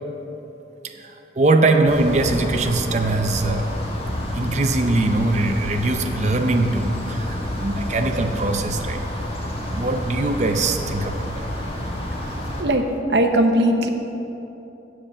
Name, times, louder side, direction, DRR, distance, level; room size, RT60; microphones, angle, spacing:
voice 1, 1.0-3.7 4.3-9.0 9.6-11.5, right 2 dB, 40° right, 5 dB, 0.6 m, -21 dB
sound 1, 1.8-12.6, left 1 dB, 30° left, 1.3 m, -29 dB
voice 2, 12.6-13.9, right 1 dB, 70° right, 5 dB, 0.8 m, -19 dB
7.8 x 7.3 x 6.6 m, 3.0 s
head